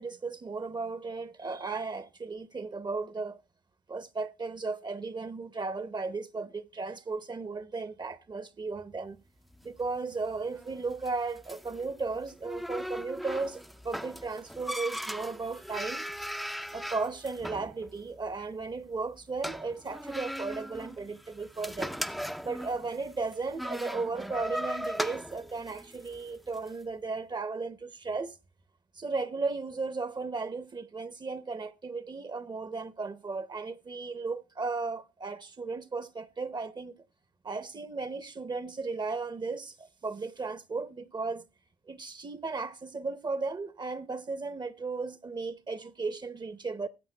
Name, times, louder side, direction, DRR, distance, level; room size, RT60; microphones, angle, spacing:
voice 1, 0.0-3.4 3.9-9.2 9.6-16.0 16.7-21.9 22.4-28.4 28.9-36.9 37.4-41.5 41.9-46.9, right 4 dB, 25° right, 0.9 m, -35 dB
sound 1, 9.5-26.7, equal, ahead, 0.6 m, -39 dB
20.0 x 8.1 x 2.2 m
cardioid pair, 110°, 17 cm